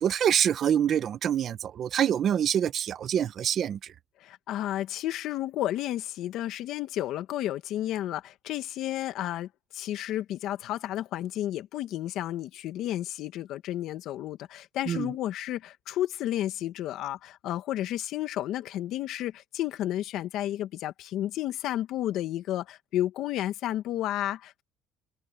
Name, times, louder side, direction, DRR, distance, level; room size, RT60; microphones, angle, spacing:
voice 1, 0.0-3.8 14.9-15.1, right 9 dB, 45° right, 1.1 m, -26 dB
voice 2, 4.2-9.5 9.7-24.6, left 13 dB, 60° left, 1.9 m, -32 dB
cardioid pair, 130°, 0 cm